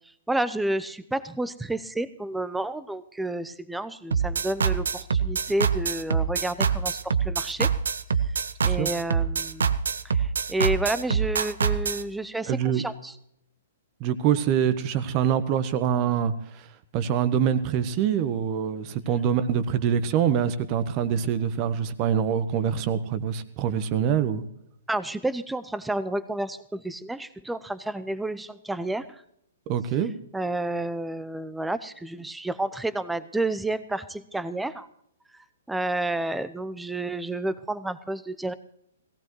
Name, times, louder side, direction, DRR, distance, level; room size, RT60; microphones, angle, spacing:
voice 1, 0.3-7.7 8.6-9.7 10.0-13.1 24.9-29.2 30.3-34.9 35.7-38.5, right 2 dB, 5° right, 15 dB, 0.7 m, -30 dB
sound 1, 4.1-12.0, right 6 dB, 70° right, 0.7 m, -25 dB
voice 2, 12.5-12.8 14.0-16.7 16.9-24.4 29.7-30.1, right 8 dB, 35° right, 13 dB, 1.1 m, -25 dB
18.0 x 16.5 x 3.2 m, 0.74 s
figure-of-eight pair, 120°, 0 cm